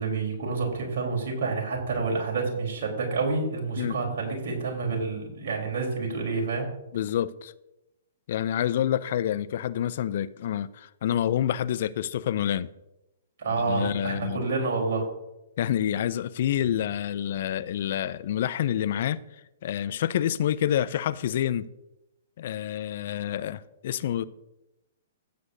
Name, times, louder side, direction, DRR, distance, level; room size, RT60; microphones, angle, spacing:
voice 1, 0.0-6.7 13.4-15.1, right 4 dB, 60° right, 3.6 m, -28 dB
voice 2, 6.9-7.5 8.3-12.7 13.5-14.4 15.6-19.2 19.6-21.7 22.4-24.2, left 10 dB, 60° left, 0.4 m, -28 dB
15.0 x 7.8 x 2.7 m
hypercardioid pair, 125°, 0 cm